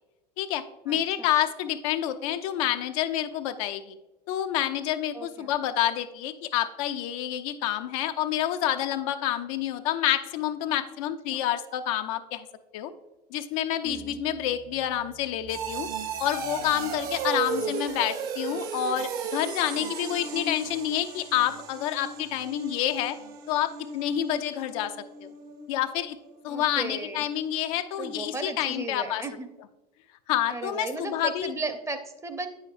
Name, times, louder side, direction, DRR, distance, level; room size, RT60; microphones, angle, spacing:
voice 1, 0.4-4.0 4.3-12.5 12.7-12.9 13.3-15.9 16.2-23.2 23.5-25.0 25.2-25.3 25.7-26.2 26.4-29.2 30.3-31.5, left 11 dB, 55° left, 9 dB, 0.5 m, -28 dB
voice 2, 0.9-1.3 5.1-5.5 11.3-11.4 13.8-14.2 26.5-27.3 28.0-29.5 30.5-32.5, right 3 dB, 15° right, 7 dB, 0.7 m, -35 dB
sound 1, 13.9-26.6 26.9-27.3 27.7-27.8, right 5 dB, 45° right, 0.9 m, -36 dB
8.8 x 6.4 x 2.4 m, 1.0 s
figure-of-eight pair, 75°, 21 cm